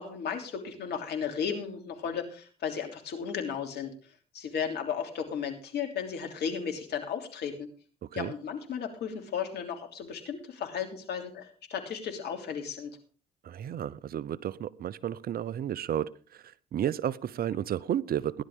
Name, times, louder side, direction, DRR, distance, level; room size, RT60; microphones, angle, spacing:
voice 1, 0.0-3.9 4.3-7.7 8.1-12.9, left 7 dB, 65° left, 3.1 m, -34 dB
voice 2, 8.0-8.3 13.4-18.4, right 10 dB, 55° right, 0.7 m, -32 dB
17.5 x 11.0 x 3.7 m
hypercardioid pair, 50°, 18 cm